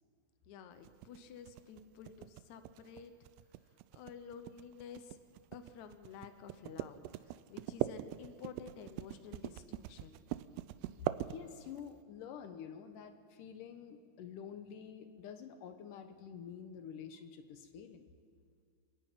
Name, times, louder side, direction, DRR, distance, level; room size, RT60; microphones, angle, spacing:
voice 1, 0.5-3.1 3.9-5.2 5.5-10.2, left 6 dB, 90° left, 8 dB, 1.6 m, -51 dB
sound 1, 0.9-11.9, right 15 dB, 80° right, 2.6 m, -41 dB
voice 2, 11.3-18.1, left 7 dB, 70° left, 8 dB, 2.0 m, -48 dB
29.0 x 10.0 x 9.0 m, 2.4 s
omnidirectional pair, 5.0 m